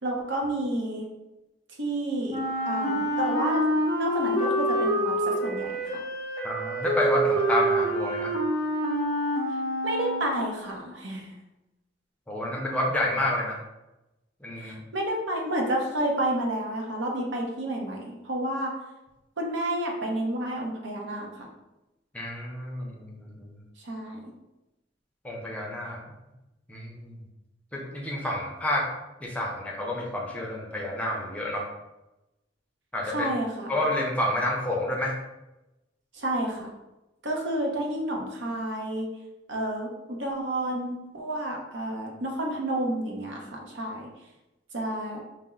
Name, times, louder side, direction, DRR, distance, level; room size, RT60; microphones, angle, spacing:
voice 1, 0.0-1.1 1.8-2.4 2.7-3.6 4.0-5.7 9.8-11.3 14.6-18.7 19.4-21.5 23.8-24.3 33.1-33.7 36.1-36.7 37.2-39.1 39.5-44.1 44.7-45.2, right 1 dB, 75° right, 0 dB, 0.8 m, -30 dB
Wind instrument woodwind instrument, 2.3-10.6, right 1 dB, 25° right, 1.2 m, -27 dB
voice 2, 6.4-8.3 12.3-13.6 14.4-14.8 22.1-23.5 25.2-26.0 26.7-27.2 27.7-28.9 29.2-31.7 32.9-33.3 33.7-35.2, left 1 dB, 5° left, -2 dB, 0.5 m, -29 dB
4.2 x 2.0 x 3.7 m, 0.98 s
head